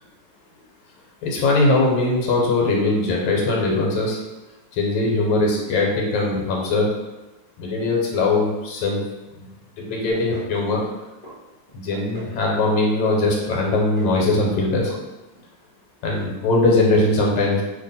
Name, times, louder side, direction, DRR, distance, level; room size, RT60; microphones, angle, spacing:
voice 1, 1.2-4.2 4.7-6.9 7.6-9.0 9.8-10.8 11.7-14.9 16.0-17.6, left 2 dB, 85° left, -1 dB, 1.4 m, -20 dB
sound 1, 10.1-10.5 10.8-11.3 11.7-12.3 12.6-13.2 13.5-14.2 14.4-14.6 14.9-15.0 15.3-15.4, equal, 40° left, 0.6 m, -40 dB
2.8 x 2.7 x 4.0 m, 1.1 s
omnidirectional pair, 2.0 m